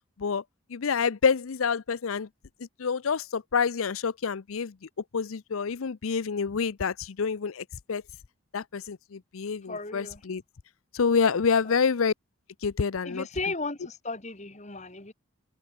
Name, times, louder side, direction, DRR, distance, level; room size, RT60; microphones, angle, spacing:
voice 1, 0.7-2.3 2.6-4.8 5.1-8.0 8.5-10.4 10.9-12.1 12.6-13.3, left 5 dB, 80° left, 0.6 m, -27 dB
voice 2, 9.7-10.2 13.0-15.1, left 3 dB, 35° left, 2.3 m, -35 dB
head